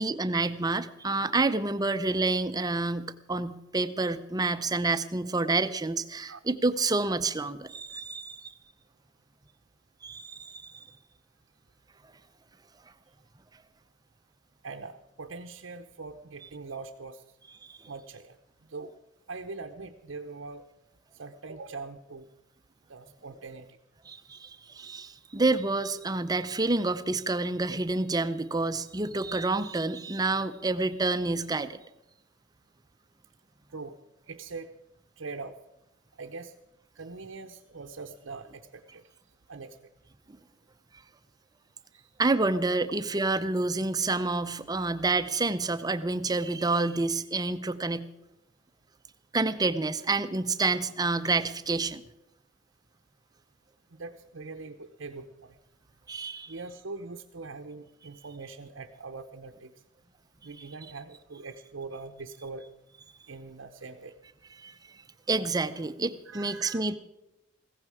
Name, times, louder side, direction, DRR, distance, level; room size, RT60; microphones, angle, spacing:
voice 1, 0.0-8.5 10.0-10.8 17.7-17.8 24.1-31.8 42.2-48.1 49.3-52.0 56.1-56.5 64.6-64.7 65.3-67.0, right 3 dB, 20° right, 11 dB, 0.6 m, -28 dB
voice 2, 14.6-17.2 17.8-18.9 19.3-20.7 21.1-22.3 22.9-23.7 33.7-34.0 34.3-34.7 35.2-35.6 36.2-36.5 36.9-39.0 39.5-39.8 41.9-42.1 53.9-55.6 56.1-59.7 60.4-62.7 63.3-64.1 66.3-66.9, right 3 dB, 75° right, 3 dB, 0.8 m, -42 dB
16.0 x 14.5 x 4.8 m, 0.93 s
head